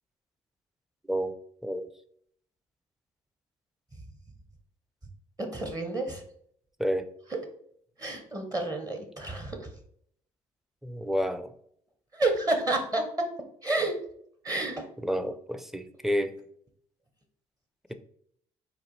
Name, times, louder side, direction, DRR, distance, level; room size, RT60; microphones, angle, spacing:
voice 1, 5.4-6.2 8.0-9.7 12.1-13.3 13.6-13.9 14.4-14.9, right 2 dB, 25° right, 4 dB, 1.0 m, -29 dB
voice 2, 10.8-11.5 15.0-16.3, equal, ahead, 9 dB, 0.5 m, -29 dB
4.2 x 2.6 x 4.1 m, 0.65 s
supercardioid pair, 60°, 16 cm